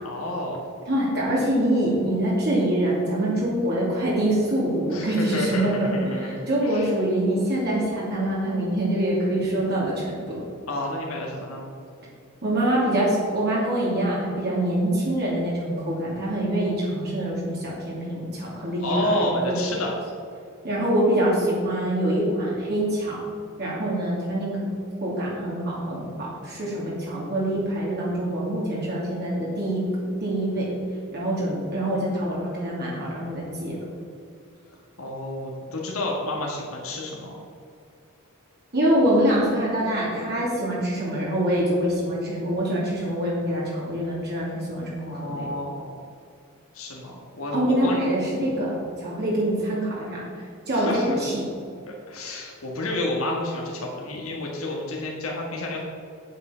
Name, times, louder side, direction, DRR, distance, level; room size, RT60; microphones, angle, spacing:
voice 1, 0.0-0.6 4.9-6.4 6.6-6.9 10.7-11.6 18.8-20.0 35.0-37.4 45.0-45.9 46.7-48.0 50.7-51.2 51.9-55.8, left 1 dB, 70° left, -2 dB, 1.7 m, -30 dB
voice 2, 0.9-10.4 12.4-19.5 20.6-23.2 23.6-24.6 25.0-29.8 30.2-30.7 31.1-33.8 38.7-45.5 47.5-51.4, right 1 dB, 50° right, -6 dB, 2.7 m, -25 dB
8.5 x 8.2 x 5.7 m, 2.4 s
head